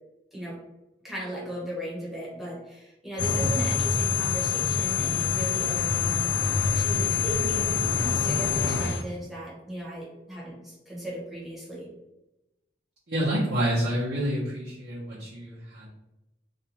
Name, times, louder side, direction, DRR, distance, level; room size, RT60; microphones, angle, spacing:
voice 1, 1.0-6.3 6.7-11.9, right 1 dB, ahead, -6 dB, 0.8 m, -37 dB
sound 1, 3.2-9.0, left 5 dB, 70° left, 0.5 m, -25 dB
voice 2, 13.1-15.9, right 1 dB, 65° right, -9 dB, 0.7 m, -28 dB
2.5 x 2.2 x 2.9 m, 0.95 s
head